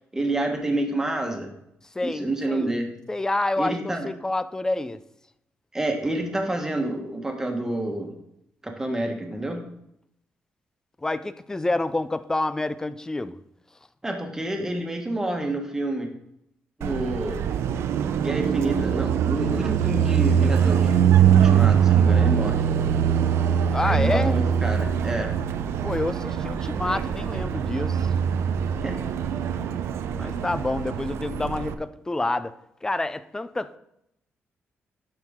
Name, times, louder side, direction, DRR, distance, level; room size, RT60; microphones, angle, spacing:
voice 1, 0.1-1.5 2.0-2.9 3.6-4.1 5.7-8.1 8.6-9.6 14.0-16.1 16.8-17.4 18.2-20.9 21.3-22.7 23.8-25.3 28.8-28.9, right 1 dB, 10° right, 3 dB, 1.4 m, -28 dB
voice 2, 1.9-2.7 3.1-5.0 11.0-13.4 23.7-24.4 25.8-28.1 30.2-32.6 32.8-33.8, left 2 dB, 15° left, 14 dB, 0.4 m, -28 dB
Car passing by, 16.8-31.7, right 8 dB, 85° right, 0.5 m, -22 dB
11.5 x 4.6 x 3.7 m, 0.78 s
cardioid pair, 125°, 4 cm